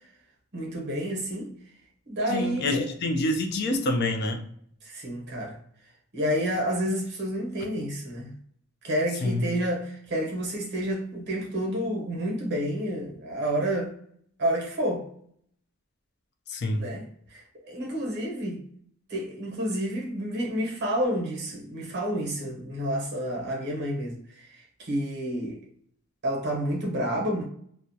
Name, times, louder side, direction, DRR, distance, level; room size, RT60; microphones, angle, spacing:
voice 1, 0.5-1.5 2.1-2.9 4.8-5.6 6.1-8.3 8.8-13.9 14.4-15.1 16.7-17.0 17.3-18.6 19.1-25.6 26.2-27.4, equal, 50° right, 0 dB, 0.7 m, -29 dB
voice 2, 2.3-4.4 9.2-9.5 16.5-16.8, left 2 dB, 45° left, 4 dB, 0.3 m, -27 dB
2.2 x 2.1 x 2.6 m, 0.63 s
head